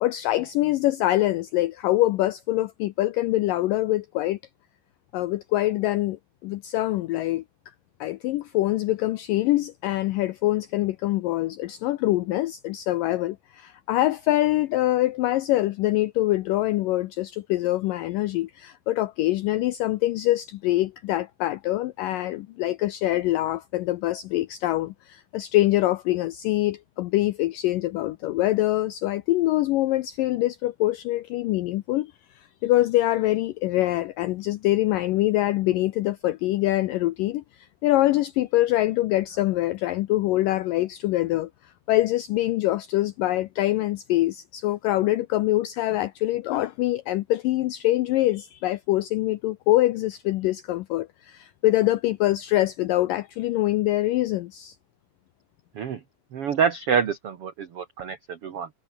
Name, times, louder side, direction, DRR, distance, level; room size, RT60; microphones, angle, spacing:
voice 1, 0.0-4.4 5.1-7.4 8.0-32.1 32.6-54.8, left 16 dB, 80° left, 2.0 m, -24 dB
voice 2, 56.3-58.7, right 7 dB, 55° right, 1.7 m, -26 dB
omnidirectional pair, 4.7 m